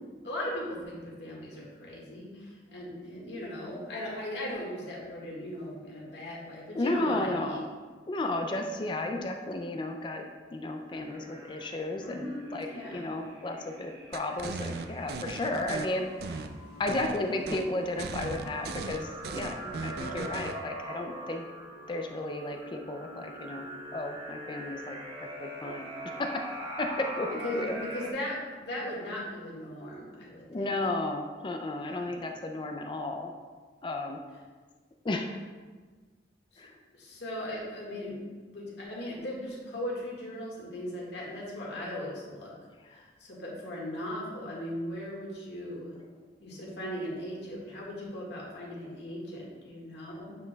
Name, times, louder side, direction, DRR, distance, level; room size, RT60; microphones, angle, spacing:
voice 1, 0.2-7.6 12.0-13.1 19.6-19.9 27.4-30.7 31.7-32.1 36.5-36.6 36.9-42.5 42.9-46.0 46.4-50.4, left 1 dB, 75° left, -4 dB, 1.7 m, -38 dB
voice 2, 6.8-7.6 8.1-10.2 10.5-12.7 12.9-16.5 16.8-21.4 21.9-23.7 23.9-26.5 26.8-27.9 30.5-33.3 33.8-34.2 35.0-35.4 36.6-36.7 42.8-43.0, left 2 dB, 25° left, 4 dB, 0.4 m, -33 dB
sound 1, 10.9-28.1, right 1 dB, 30° right, 1.0 m, -43 dB
sound 2, 14.1-15.9 16.2-17.2 17.5-17.7 18.0-20.6, right 4 dB, 60° right, 0.4 m, -37 dB
8.2 x 5.2 x 2.3 m, 1.4 s
head